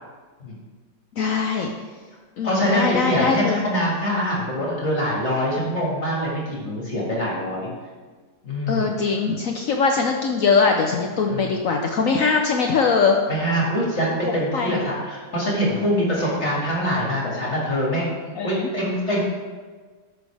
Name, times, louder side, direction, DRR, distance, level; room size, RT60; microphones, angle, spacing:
voice 1, 1.2-1.7 2.4-3.6 8.7-13.2 14.5-14.8 18.4-18.7, left 5 dB, 60° left, 2 dB, 0.9 m, -21 dB
voice 2, 2.4-7.7 8.4-8.9 11.3-11.5 13.3-19.2, equal, 40° left, -4 dB, 2.2 m, -24 dB
13.0 x 6.2 x 3.4 m, 1.5 s
omnidirectional pair, 1.8 m